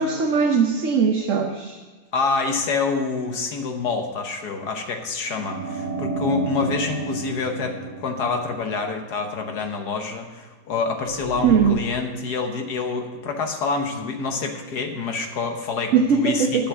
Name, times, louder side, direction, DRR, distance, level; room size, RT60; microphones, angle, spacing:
voice 1, 0.0-1.8 11.4-11.8 15.9-16.7, right 6 dB, 60° right, 3 dB, 1.1 m, -20 dB
voice 2, 2.1-16.7, left 4 dB, 80° left, 5 dB, 1.6 m, -27 dB
sound 1, 5.3-9.2 11.0-11.7, right 4 dB, 85° right, 1.7 m, -31 dB
10.5 x 7.0 x 7.8 m, 1.3 s
omnidirectional pair, 1.7 m